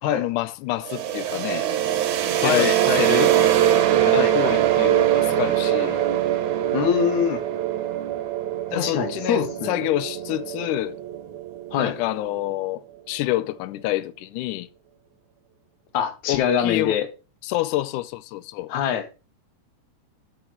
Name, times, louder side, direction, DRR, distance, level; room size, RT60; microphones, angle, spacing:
voice 1, 0.2-1.7 2.4-3.3 4.0-6.0 8.7-11.0 11.8-14.7 16.3-17.0 17.4-18.7, left 16 dB, 90° left, 2.1 m, -28 dB
sound 1, 0.8-12.5, right 12 dB, 75° right, 2.4 m, -23 dB
voice 2, 2.4-3.1 4.1-4.3 6.7-7.4 8.7-9.8 11.7-12.0 15.9-17.1 18.7-19.1, left 8 dB, 75° left, 2.5 m, -23 dB
8.0 x 5.1 x 5.8 m
omnidirectional pair, 3.5 m